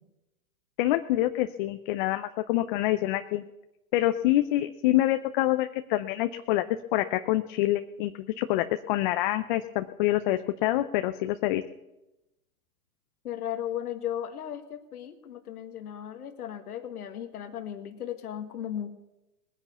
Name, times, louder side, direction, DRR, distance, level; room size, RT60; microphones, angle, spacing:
voice 1, 0.8-3.4 3.9-6.6 6.9-11.6, left 15 dB, 35° left, 9 dB, 0.5 m, -26 dB
voice 2, 13.2-18.9, left 10 dB, 80° left, 6 dB, 1.6 m, -36 dB
19.0 x 10.0 x 6.9 m, 0.96 s
hypercardioid pair, 130°, 44 cm